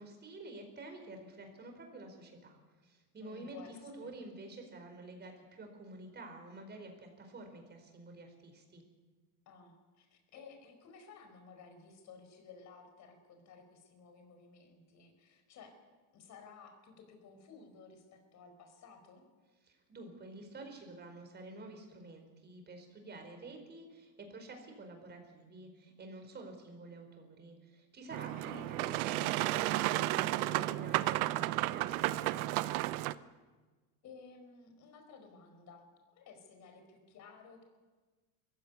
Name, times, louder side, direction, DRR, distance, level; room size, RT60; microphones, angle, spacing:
voice 1, 0.0-8.8 19.6-32.4, right 2 dB, 25° right, 4 dB, 4.9 m, -49 dB
voice 2, 3.2-4.2 9.4-15.8 16.1-19.2 28.5-28.9 34.0-35.9 36.1-37.6, left 5 dB, 40° left, 5 dB, 5.0 m, -55 dB
Boat Water vehicle, 28.1-33.1, right 17 dB, 70° right, 0.9 m, -32 dB
21.0 x 16.0 x 9.6 m, 1.3 s
supercardioid pair, 130°, 44 cm